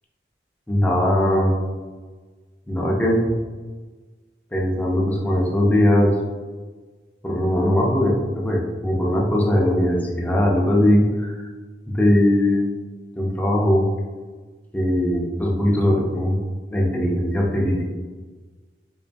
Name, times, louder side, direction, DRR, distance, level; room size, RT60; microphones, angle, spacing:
voice 1, 0.7-1.5 2.7-3.3 4.5-6.1 7.2-11.5 11.9-12.7 13.2-13.8 14.7-16.4 16.7-17.9, left 1 dB, 10° left, -2 dB, 0.4 m, -20 dB
2.6 x 2.3 x 2.5 m, 1.4 s
head